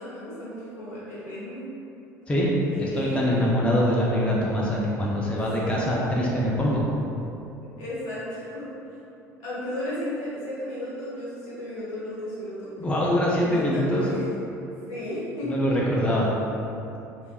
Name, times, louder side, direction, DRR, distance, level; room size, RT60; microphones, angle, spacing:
voice 1, 0.0-1.7 2.7-3.5 5.6-5.9 7.8-8.7 9.4-12.7 13.4-14.2 14.9-15.5, left 1 dB, 65° left, -10 dB, 1.2 m, -34 dB
voice 2, 2.8-6.9 12.8-14.1 15.4-16.3, equal, 15° left, -5 dB, 0.5 m, -23 dB
3.3 x 2.7 x 2.3 m, 2.8 s
figure-of-eight pair, 60°, 9 cm